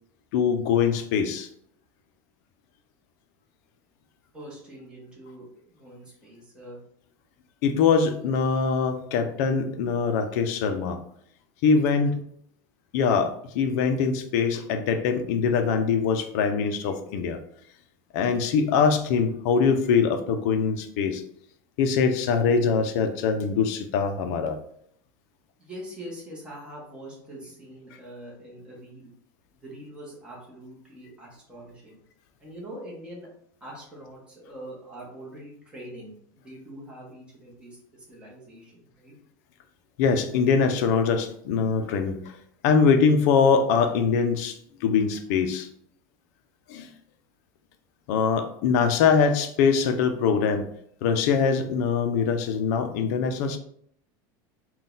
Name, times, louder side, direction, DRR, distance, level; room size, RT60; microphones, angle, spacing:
voice 1, 0.3-1.5 7.6-11.0 11.6-12.2 12.9-17.4 18.1-21.2 21.8-24.6 40.0-42.2 42.6-45.7 46.7-46.9 48.1-50.7 51.0-53.6, left 5 dB, 50° left, 7 dB, 0.5 m, -23 dB
voice 2, 4.3-6.8 25.6-29.1 29.6-32.0 32.4-33.3 33.6-39.2, right 1 dB, 10° right, -4 dB, 1.0 m, -43 dB
3.9 x 2.3 x 3.8 m, 0.67 s
supercardioid pair, 180°, 11 cm